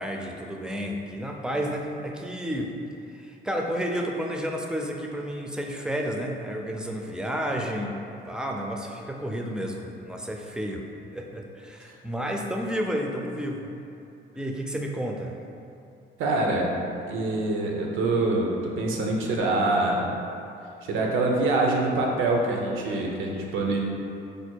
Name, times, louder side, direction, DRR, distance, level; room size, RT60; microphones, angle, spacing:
voice 1, 0.0-2.7 3.1-10.9 11.1-13.7 14.4-15.4, equal, 5° right, 1 dB, 0.5 m, -31 dB
voice 2, 16.2-16.7 17.1-20.1 20.8-23.8, right 2 dB, 85° right, -1 dB, 0.7 m, -25 dB
5.1 x 2.2 x 4.4 m, 2.7 s
cardioid pair, 90°, 20 cm